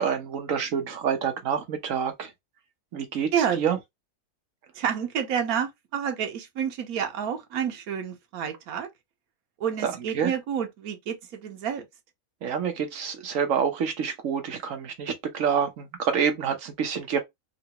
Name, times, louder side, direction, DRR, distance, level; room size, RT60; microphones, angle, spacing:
voice 1, 0.0-2.3 2.9-3.8 9.8-10.3 12.4-17.2, right 7 dB, 65° right, 1.2 m, -27 dB
voice 2, 4.7-8.9 9.6-11.9, right 8 dB, 80° right, 1.3 m, -29 dB
3.9 x 2.2 x 2.8 m
omnidirectional pair, 1.5 m